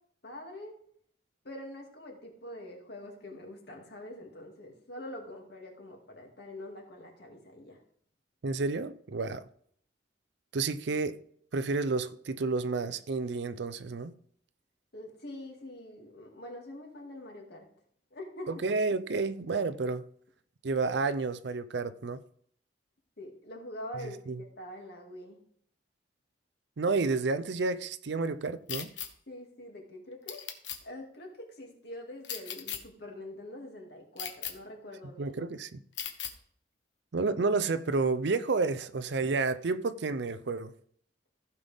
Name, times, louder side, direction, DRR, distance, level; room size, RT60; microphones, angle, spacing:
voice 1, 0.2-0.7 1.4-7.8 14.9-17.7 18.1-18.5 23.2-24.2 24.6-25.4 29.3-30.4 30.8-35.4, left 1 dB, 60° left, 2.4 m, -44 dB
voice 2, 8.4-9.4 10.5-11.2 11.5-14.1 18.5-20.0 20.6-22.2 24.0-24.4 26.8-28.9 35.2-35.8 37.1-40.7, right 3 dB, 65° right, 0.5 m, -30 dB
sound 1, 28.7-29.1 30.3-30.8 32.2-32.8 34.2-34.5 36.0-36.3, left 9 dB, 75° left, 1.1 m, -37 dB
15.0 x 5.7 x 3.5 m
head